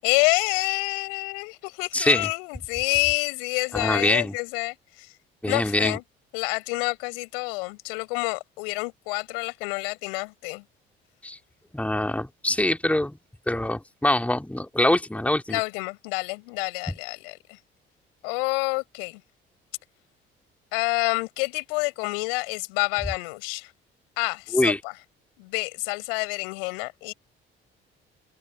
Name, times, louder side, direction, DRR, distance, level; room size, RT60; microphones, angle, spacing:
voice 1, 0.0-5.1 5.5-6.0 6.3-10.6 15.5-17.6 18.2-19.2 20.7-23.7 24.2-25.0 25.4-27.1, left 31 dB, 70° left, 7.3 m, -28 dB
voice 2, 1.9-2.3 3.7-4.3 5.4-6.0 11.2-11.4 11.7-13.1 13.5-15.6 24.5-24.8, left 1 dB, 5° left, 2.7 m, -24 dB
figure-of-eight pair, 50°, 30 cm